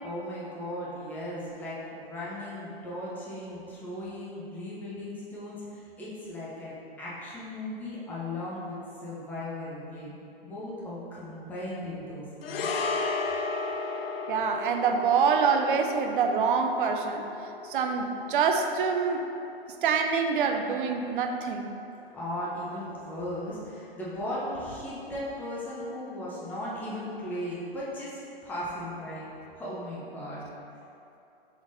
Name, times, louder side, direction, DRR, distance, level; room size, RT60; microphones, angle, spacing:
voice 1, 0.0-10.2 10.4-12.7 22.1-29.3 29.5-30.5, left 1 dB, 5° left, -8 dB, 0.6 m, -37 dB
sound 1, 12.4-20.9 21.2-21.4, left 4 dB, 75° left, 0.5 m, -35 dB
voice 2, 14.3-17.2 17.6-19.2 19.8-21.7, right 5 dB, 60° right, 5 dB, 0.5 m, -26 dB
5.0 x 3.7 x 2.6 m, 2.7 s
hypercardioid pair, 135°, 30 cm